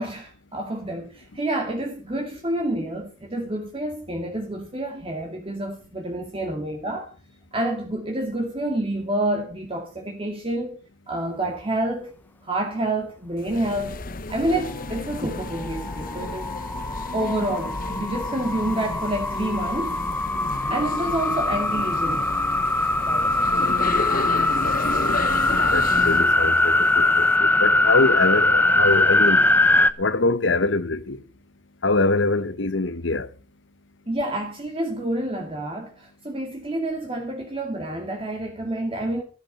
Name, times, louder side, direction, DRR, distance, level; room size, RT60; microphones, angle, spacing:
voice 1, 0.0-7.1 7.5-10.8 11.1-12.1 12.4-14.0 14.3-16.6 17.1-20.0 20.7-22.3 23.0-23.4 34.1-39.2, right 1 dB, 30° right, 2.3 m, -28 dB
sound 1, 13.4-26.3, left 2 dB, 50° left, 1.1 m, -32 dB
sound 2, 15.4-29.9, left 2 dB, 10° left, 0.7 m, -22 dB
voice 2, 24.6-25.2 25.7-29.5 30.0-31.2 31.8-33.3, left 3 dB, 85° left, 1.0 m, -24 dB
14.0 x 12.5 x 5.4 m
head